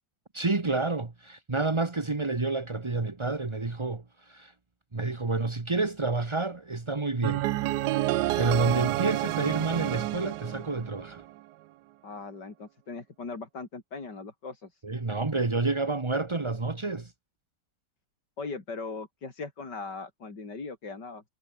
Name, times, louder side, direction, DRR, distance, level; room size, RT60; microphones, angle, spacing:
voice 1, 0.3-4.5 4.9-7.5 8.1-11.2 14.8-17.1, right 3 dB, 20° right, 0.8 m, -29 dB
sound 1, 7.2-11.3, right 16 dB, 80° right, 0.9 m, -29 dB
voice 2, 12.0-14.8 18.4-21.2, left 4 dB, 50° left, 4.3 m, -39 dB
omnidirectional pair, 2.4 m